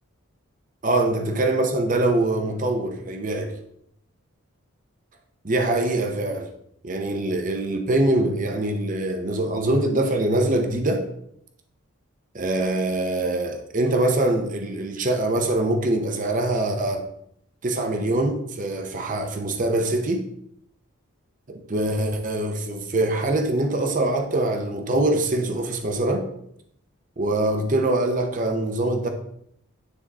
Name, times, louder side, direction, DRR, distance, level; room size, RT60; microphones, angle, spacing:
voice 1, 0.8-3.5 5.4-6.5 6.8-11.0 12.3-17.0 17.6-20.3 21.5-26.3 27.2-29.1, right 2 dB, 40° right, 0.7 m, -23 dB
9.7 x 3.6 x 3.6 m
head